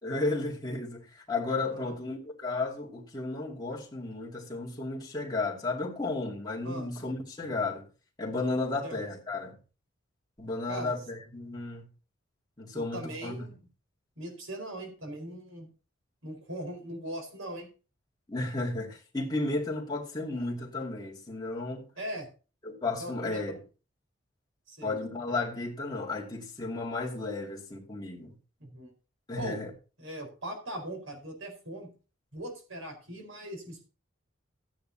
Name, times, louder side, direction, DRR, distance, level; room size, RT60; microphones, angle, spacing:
voice 1, 0.0-7.8 8.2-9.5 10.4-11.9 12.6-13.4 18.3-21.8 22.6-23.5 24.8-28.3 29.3-29.7, left 2 dB, 20° left, 2.5 m, -33 dB
voice 2, 10.7-11.0 12.7-13.5 14.2-15.7 16.2-17.7 22.0-22.3 23.0-23.6 24.7-25.0 28.6-28.9 29.4-29.6 30.0-31.9 32.3-33.9, right 1 dB, 85° right, 4.7 m, -40 dB
14.5 x 10.0 x 2.8 m
head